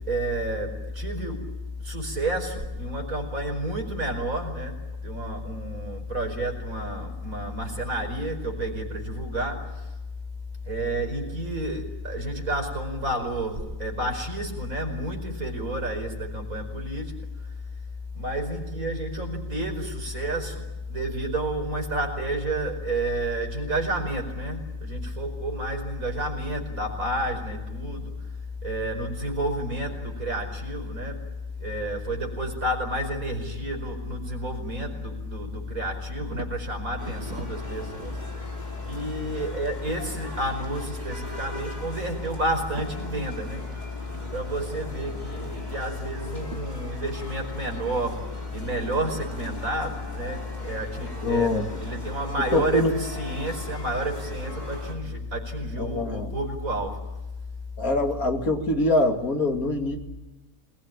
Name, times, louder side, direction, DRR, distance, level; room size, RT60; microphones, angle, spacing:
voice 1, 0.1-1.5 1.8-9.9 10.7-17.1 18.1-28.1 28.6-31.2 31.6-38.2 38.9-43.6 44.3-57.0, right 1 dB, 70° right, 4 dB, 5.5 m, -30 dB
sound 1, 36.2-36.6 37.1-38.2 39.3-40.2 40.5-40.6 41.4-42.2 42.4-43.8 44.1-44.3 44.7-45.7 46.2-46.6 47.0-49.6, right 4 dB, 50° right, 2.7 m, -45 dB
sound 2, 37.0-54.9, left 1 dB, 30° left, 4.1 m, -41 dB
voice 2, 51.2-51.7 52.4-52.9 55.8-56.3 57.8-60.0, left 2 dB, 85° left, 4 dB, 3.0 m, -24 dB
27.5 x 20.5 x 9.0 m, 1.1 s
omnidirectional pair, 1.5 m